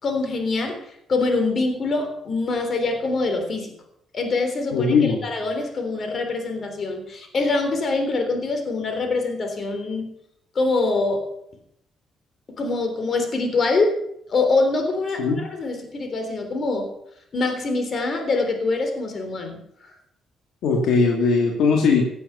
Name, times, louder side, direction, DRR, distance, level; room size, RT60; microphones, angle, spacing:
voice 1, 0.0-3.7 4.1-5.0 5.2-10.1 10.6-11.2 12.6-14.0 14.3-16.9 17.3-19.6, left 3 dB, 45° left, 6 dB, 3.5 m, -24 dB
voice 2, 4.7-5.3 15.2-15.4 20.6-22.1, left 4 dB, 80° left, 1 dB, 2.3 m, -19 dB
16.0 x 8.4 x 6.9 m, 0.75 s
cardioid pair, 90°, 0 cm